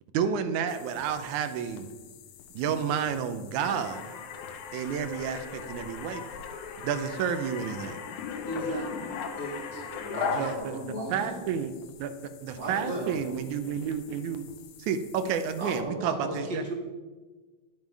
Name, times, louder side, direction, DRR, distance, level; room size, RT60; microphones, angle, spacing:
voice 1, 0.1-1.9 2.5-4.2 4.7-6.2 6.8-8.0 10.4-11.7 12.0-12.1 12.4-14.4 14.8-16.7, right 7 dB, 90° right, 9 dB, 2.1 m, -30 dB
sound 1, 0.7-15.8, left 7 dB, 75° left, 1.9 m, -51 dB
sound 2, 3.6-10.6, left 6 dB, 90° left, 2.3 m, -37 dB
voice 2, 8.4-9.8 10.4-11.4 12.9-13.0 14.3-14.4, right 1 dB, 35° left, -5 dB, 1.2 m, -37 dB
voice 3, 9.7-10.7 12.5-13.2 15.6-16.7, right 2 dB, 45° right, 1 dB, 1.7 m, -36 dB
10.5 x 7.5 x 4.7 m, 1.3 s
omnidirectional pair, 3.5 m